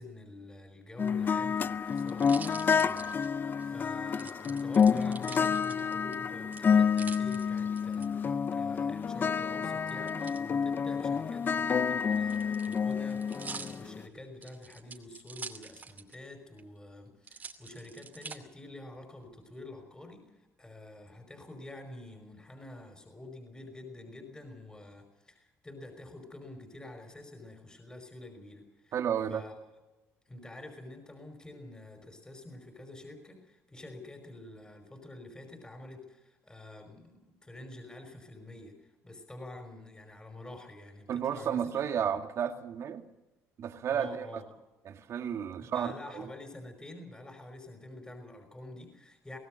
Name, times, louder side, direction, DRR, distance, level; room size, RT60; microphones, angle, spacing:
voice 1, 0.0-29.0 29.3-29.5 30.3-41.9 43.8-44.5 45.6-49.4, left 2 dB, 15° left, 4 dB, 5.3 m, -48 dB
sound 1, 1.0-14.0, left 6 dB, 35° left, 0.6 m, -29 dB
sound 2, 1.3-3.7 4.2-6.2 6.5-8.1 9.9-10.4 11.4-16.3 16.6-16.7 17.2-18.4 19.0-19.5, right 5 dB, 30° right, 2.6 m, -46 dB
voice 2, 28.9-29.4 41.1-43.1 43.6-44.4 44.9-46.3, right 8 dB, 55° right, 6 dB, 2.1 m, -32 dB
24.5 x 18.0 x 6.5 m, 1.1 s
cardioid pair, 100°, 6 cm